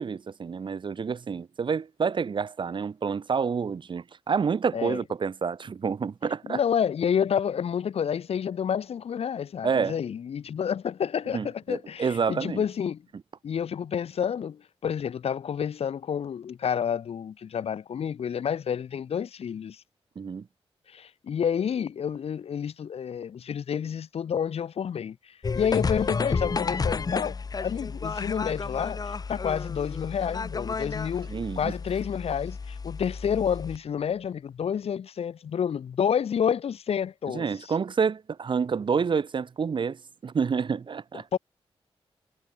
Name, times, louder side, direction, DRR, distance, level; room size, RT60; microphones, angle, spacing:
voice 1, 0.0-6.6 9.6-10.0 11.3-12.6 20.2-20.5 31.3-31.7 37.3-41.3, right 6 dB, 55° right, 0.9 m, -28 dB
voice 2, 6.5-13.0 13.4-19.8 20.9-31.3 31.6-37.5 41.3-41.4, left 8 dB, 80° left, 2.2 m, -29 dB
sound 1, 25.4-33.8, left 4 dB, 40° left, 0.9 m, -31 dB
cardioid pair, 80°, 10 cm